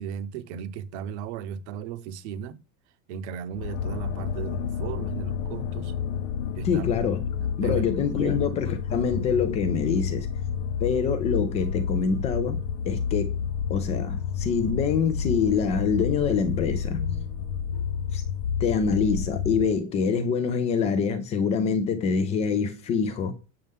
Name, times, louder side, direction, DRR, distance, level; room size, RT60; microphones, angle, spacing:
voice 1, 0.0-2.6 3.1-5.9 6.6-6.8 7.4-8.4, right 8 dB, 60° right, 0.9 m, -36 dB
sound 1, 3.5-19.8, left 7 dB, 75° left, 0.7 m, -30 dB
voice 2, 6.6-7.2 7.6-10.3 10.8-13.4 13.7-17.0 18.1-18.2 18.6-23.4, left 6 dB, 20° left, 0.3 m, -25 dB
sound 2, 13.8-19.8 20.3-20.5, left 4 dB, 35° left, 0.8 m, -45 dB
7.6 x 6.5 x 3.6 m
supercardioid pair, 165°, 39 cm